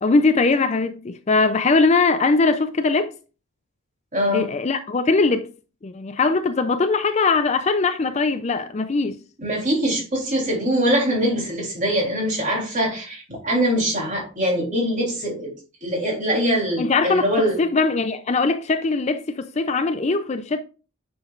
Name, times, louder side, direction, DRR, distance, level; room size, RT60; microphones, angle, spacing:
voice 1, 0.0-3.1 4.3-5.5 5.8-9.2 16.8-20.6, left 3 dB, 30° left, 0.4 m, -21 dB
voice 2, 4.1-4.5 9.4-15.5 15.8-17.6, equal, 35° right, 3.3 m, -23 dB
8.9 x 6.3 x 2.5 m
head